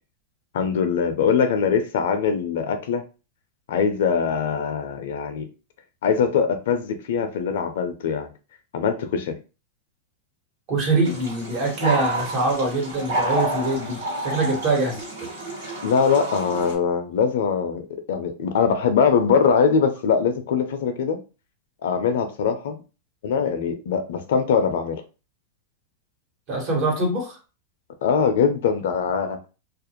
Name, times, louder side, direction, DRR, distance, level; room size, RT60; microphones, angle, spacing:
voice 1, 0.5-3.0 3.7-5.5 6.0-8.3 8.7-9.4 15.8-21.2 21.8-22.8 23.2-25.0 28.0-29.4, left 6 dB, 75° left, 0.4 m, -22 dB
voice 2, 10.7-15.3 26.5-27.4, right 2 dB, 50° right, 1.3 m, -24 dB
sound 1, 11.0-16.8, right 1 dB, 80° right, 1.5 m, -29 dB
2.4 x 2.0 x 2.9 m
hypercardioid pair, 115°, 0 cm